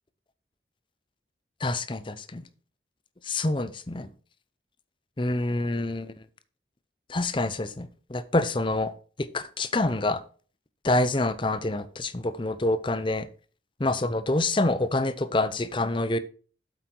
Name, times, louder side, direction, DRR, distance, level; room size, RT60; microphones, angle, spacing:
voice 1, 1.6-2.4 3.2-4.1 5.2-6.1 7.1-8.9 9.3-10.2 10.8-13.3 13.8-16.2, left 2 dB, 25° left, 0.7 m, -26 dB
8.2 x 8.1 x 4.6 m
head